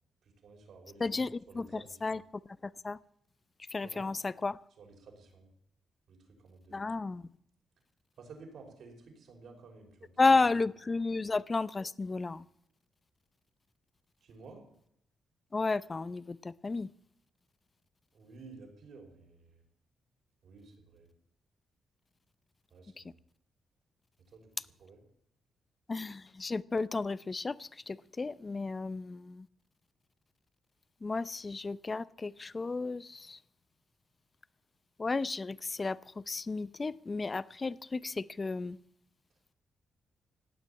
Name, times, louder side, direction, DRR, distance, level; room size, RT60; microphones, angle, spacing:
voice 1, 0.2-2.2 3.8-4.1 4.8-5.5 6.1-6.9 8.2-10.7 14.2-14.6 18.1-19.6 20.4-21.1 22.7-23.2 24.3-24.5 24.8-25.0, right 4 dB, 70° right, 2 dB, 5.8 m, -53 dB
voice 2, 1.0-2.2 2.6-3.0 3.7-4.6 6.7-7.3 10.2-12.4 15.5-16.9 25.9-29.5 31.0-33.4 35.0-38.8, left 3 dB, 30° left, 18 dB, 0.7 m, -32 dB
17.0 x 9.5 x 8.8 m, 0.72 s
cardioid pair, 85°, 0 cm